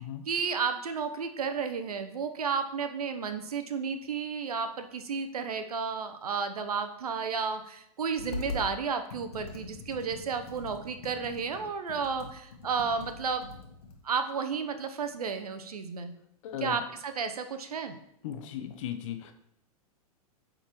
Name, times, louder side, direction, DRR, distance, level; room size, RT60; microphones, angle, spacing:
voice 1, 0.3-13.5 14.0-16.1 16.6-18.0, right 5 dB, 75° right, 8 dB, 0.8 m, -32 dB
Computer keyboard, 8.2-8.7 9.1-14.0, left 4 dB, 75° left, 1.3 m, -42 dB
voice 2, 16.4-16.8 18.2-19.3, left 10 dB, 55° left, 7 dB, 0.8 m, -37 dB
8.9 x 3.8 x 3.0 m, 0.73 s
hypercardioid pair, 105°, 19 cm